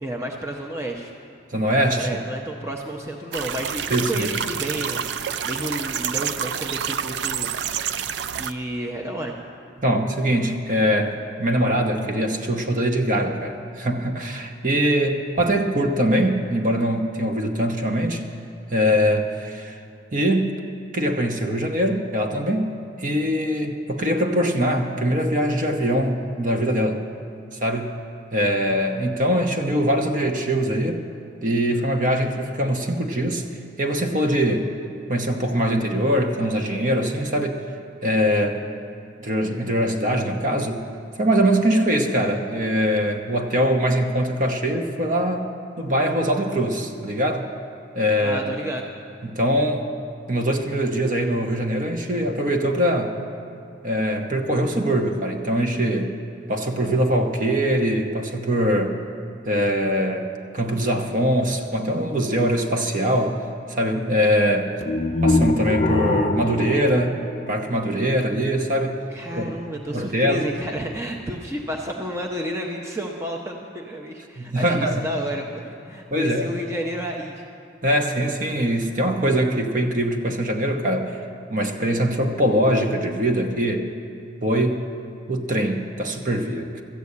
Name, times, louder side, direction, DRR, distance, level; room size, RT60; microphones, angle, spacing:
voice 1, 0.0-1.1 2.0-7.5 8.4-9.3 48.2-48.9 69.1-77.4, equal, 15° right, 1 dB, 0.7 m, -31 dB
voice 2, 1.5-2.1 3.9-4.3 9.8-18.2 18.7-19.8 20.1-20.6 20.9-27.0 27.5-27.9 28.3-31.0 31.4-33.4 33.8-34.7 35.1-37.6 38.0-38.6 39.2-40.8 41.2-45.5 45.8-47.5 47.9-48.6 49.2-49.9 50.3-53.2 53.8-56.1 56.5-59.0 59.4-63.4 63.7-64.7 65.2-67.2 67.5-69.0 69.4-69.6 69.9-70.4 74.4-75.1 76.1-76.5 77.8-81.2 81.5-83.9 84.4-84.8 85.3-86.8, equal, 45° right, 4 dB, 0.9 m, -22 dB
sound 1, 3.3-8.5, right 8 dB, 65° right, 0.4 m, -28 dB
sound 2, 64.8-68.0, left 2 dB, 35° left, 0.4 m, -23 dB
13.5 x 8.2 x 8.3 m, 2.4 s
head